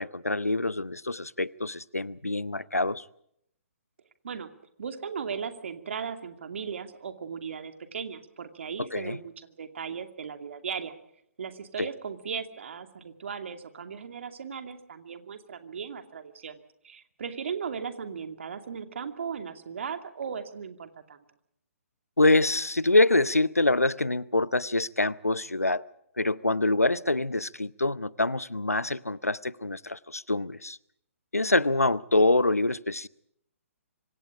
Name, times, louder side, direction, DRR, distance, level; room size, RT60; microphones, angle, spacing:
voice 1, 0.0-3.0 8.8-9.2 11.8-11.9 22.2-25.8 26.2-30.8 31.3-33.1, left 2 dB, 90° left, 0.8 m, -25 dB
voice 2, 4.8-10.9 11.4-21.2, right 6 dB, 55° right, 2.5 m, -37 dB
25.5 x 25.0 x 5.0 m
figure-of-eight pair, 130°, 8 cm